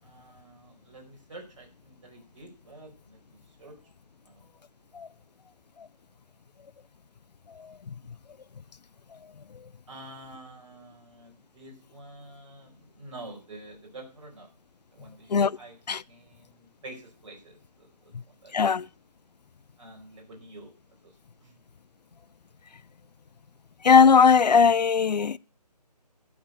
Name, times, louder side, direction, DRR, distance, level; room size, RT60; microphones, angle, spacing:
voice 1, 0.0-3.2 3.6-3.8 4.2-4.4 9.9-14.5 14.9-15.8 16.1-18.6 19.8-20.7 21.0-21.1 21.4-21.5, right 2 dB, 50° right, 4.7 m, -48 dB
voice 2, 7.6-7.9 15.3-15.6 15.9-16.0 18.5-18.9 23.8-25.4, left 6 dB, 75° left, 0.4 m, -19 dB
11.5 x 5.3 x 8.1 m
figure-of-eight pair, 155°, 21 cm